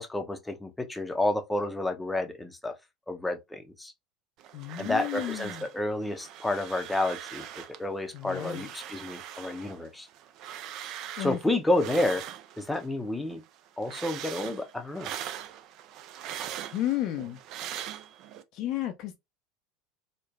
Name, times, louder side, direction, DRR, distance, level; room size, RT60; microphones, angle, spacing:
voice 1, 0.0-2.7 3.1-3.9 4.8-10.1 11.2-12.3 12.6-13.4 13.8-15.1, left 2 dB, 10° left, 0.6 m, -30 dB
sound 1, 4.4-5.8 6.0-7.8 8.2-12.9 13.2-18.4, right 10 dB, 55° right, 0.3 m, -41 dB
voice 2, 4.5-5.7 8.1-8.7 11.2-11.4 16.7-17.4 18.5-19.2, left 13 dB, 55° left, 0.4 m, -32 dB
3.1 x 2.1 x 2.3 m
hypercardioid pair, 75°, 0 cm